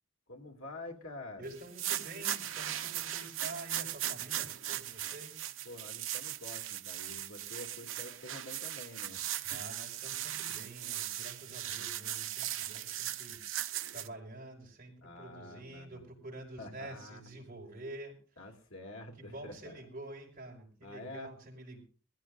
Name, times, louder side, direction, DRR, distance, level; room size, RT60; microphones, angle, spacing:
voice 1, 0.3-1.5 5.6-9.2 9.5-9.6 15.0-16.0 16.6-17.4 18.4-19.7 20.8-21.3, left 2 dB, 90° left, 2 dB, 2.5 m, -48 dB
voice 2, 1.4-5.5 9.4-13.6 13.9-18.4 19.2-21.8, right 2 dB, 45° right, 0 dB, 5.3 m, -48 dB
sound 1, 1.6-14.1, right 12 dB, 80° right, 0.9 m, -38 dB
22.0 x 15.0 x 2.6 m, 0.38 s
head